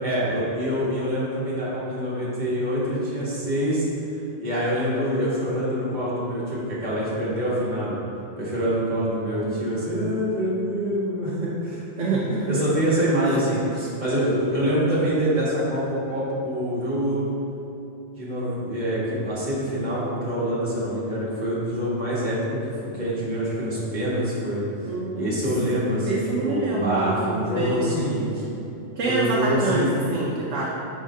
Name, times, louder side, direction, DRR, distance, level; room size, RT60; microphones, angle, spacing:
voice 1, 0.0-3.9 4.4-8.0 8.4-11.8 12.5-17.2 18.1-24.6 25.1-28.5 29.1-29.9, equal, 40° right, -9 dB, 1.6 m, -25 dB
voice 2, 12.0-12.5 12.8-12.9 24.8-25.4 26.0-27.9 29.0-30.7, right 2 dB, 90° right, -5 dB, 1.1 m, -26 dB
4.9 x 3.9 x 5.4 m, 2.9 s
omnidirectional pair, 1.2 m